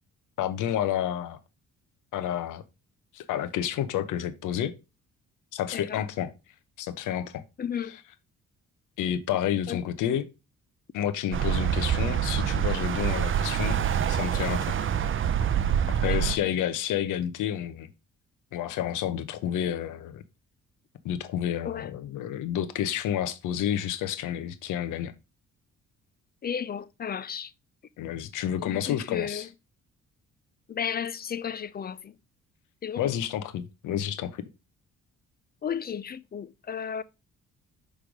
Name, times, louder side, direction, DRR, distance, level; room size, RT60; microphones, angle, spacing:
voice 1, 0.4-1.4 2.1-2.6 3.1-4.8 5.5-6.3 6.8-7.4 9.0-10.3 10.9-13.8 14.1-14.8 15.9-17.9 18.5-20.2 21.0-25.1 28.0-29.5 33.0-34.4, left 10 dB, 85° left, 0.9 m, -30 dB
voice 2, 5.7-6.1 7.6-8.0 9.7-9.8 16.0-16.4 21.6-21.9 26.4-27.5 28.6-29.5 30.7-32.2 32.8-33.1 35.6-37.0, left 8 dB, 30° left, 0.5 m, -34 dB
sound 1, 11.3-16.4, right 9 dB, 45° right, 0.6 m, -26 dB
6.2 x 3.4 x 5.0 m
cardioid pair, 90°, 30 cm